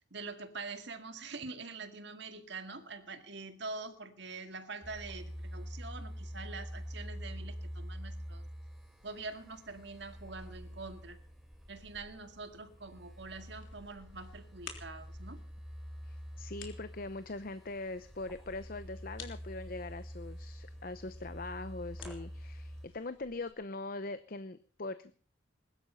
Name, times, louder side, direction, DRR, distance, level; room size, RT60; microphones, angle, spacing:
voice 1, 0.1-8.4 9.0-11.2 11.7-15.4, right 3 dB, 60° right, 8 dB, 2.0 m, -45 dB
sound 1, 4.8-22.9, equal, ahead, 3.4 m, -46 dB
sound 2, 13.4-23.5, left 6 dB, 80° left, 3.5 m, -56 dB
voice 2, 16.1-25.1, left 2 dB, 45° left, 12 dB, 0.8 m, -42 dB
21.0 x 12.5 x 5.6 m, 0.42 s
head